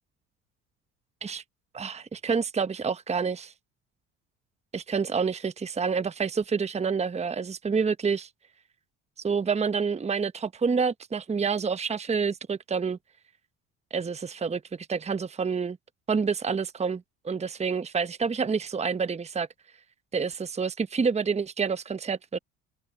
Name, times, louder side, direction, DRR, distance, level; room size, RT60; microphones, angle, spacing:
voice 1, 1.7-3.5 4.7-8.3 9.2-13.0 13.9-15.8 16.1-19.5 20.1-22.4, right 5 dB, 20° right, 0.9 m, -28 dB
open air
supercardioid pair, 75°, 34 cm